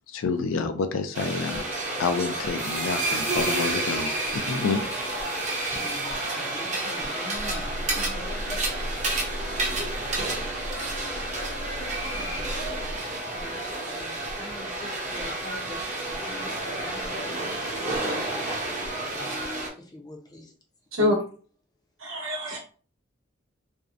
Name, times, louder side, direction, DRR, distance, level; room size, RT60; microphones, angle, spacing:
voice 1, 0.1-1.6 2.0-4.8, left 4 dB, 80° left, 0.4 m, -28 dB
sound 1, 1.1-19.7, right 2 dB, 35° right, 0.6 m, -30 dB
voice 2, 5.7-8.7 11.9-12.5 13.0-18.3 19.0-20.5 20.9-21.1, left 2 dB, 20° left, 0.5 m, -43 dB
sound 2, 7.3-13.0, equal, 60° left, 0.7 m, -37 dB
voice 3, 22.0-22.6, left 1 dB, 80° right, 0.9 m, -25 dB
2.6 x 2.0 x 2.4 m
head